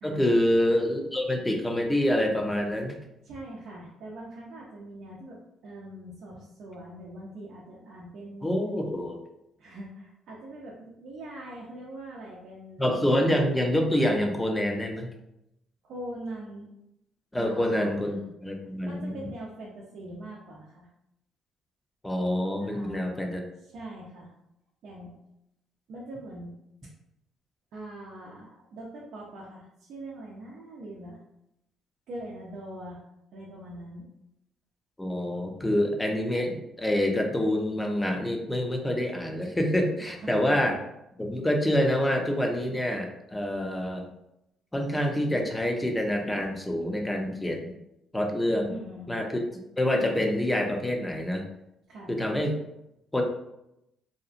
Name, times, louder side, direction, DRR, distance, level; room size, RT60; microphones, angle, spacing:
voice 1, 0.0-3.0 8.4-9.2 12.8-15.1 17.3-18.2 18.4-19.2 22.0-23.4 35.0-40.8 41.2-44.0 44.7-47.8 48.1-48.7 49.1-49.5 49.8-51.4 52.1-52.6 53.1-53.2, left 1 dB, 10° left, 2 dB, 0.5 m, -26 dB
voice 2, 3.2-8.5 9.6-13.1 15.8-16.7 17.4-17.9 18.6-20.9 22.6-23.0 23.6-24.3 24.8-25.1 25.9-26.5 27.7-31.2 32.1-33.0 33.3-34.1 40.0-40.6 48.7-49.2 51.9-52.1, right 1 dB, 70° right, -5 dB, 0.5 m, -42 dB
2.8 x 2.3 x 2.5 m, 0.84 s
supercardioid pair, 75°, 0 cm